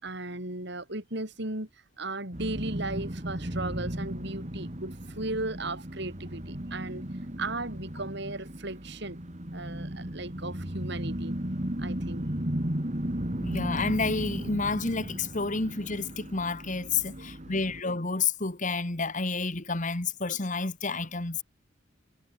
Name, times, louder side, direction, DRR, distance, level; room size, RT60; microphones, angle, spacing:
voice 1, 0.0-1.7 2.0-7.0 7.4-9.2 9.5-11.4 11.8-12.3 17.2-17.3, right 2 dB, 60° right, 5.9 m, -36 dB
sound 1, 2.3-17.8, right 1 dB, 35° right, 2.7 m, -35 dB
voice 2, 13.4-21.4, left 4 dB, 40° left, 1.9 m, -30 dB
head